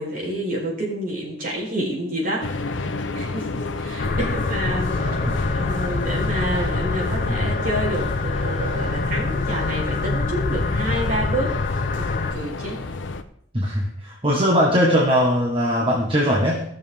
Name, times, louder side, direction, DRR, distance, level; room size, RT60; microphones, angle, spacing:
voice 1, 0.0-2.6 3.1-5.0 5.5-12.8, right 1 dB, 50° right, -4 dB, 4.4 m, -28 dB
sound 1, 2.4-13.2, left 3 dB, 80° left, 0.8 m, -31 dB
sound 2, 4.0-12.3, left 3 dB, 50° left, 0.6 m, -25 dB
sound 3, 4.9-10.1, right 1 dB, 90° right, 4.0 m, -37 dB
voice 2, 7.3-7.6 13.5-16.6, equal, 30° right, -3 dB, 1.6 m, -20 dB
16.5 x 6.7 x 3.7 m, 0.67 s
head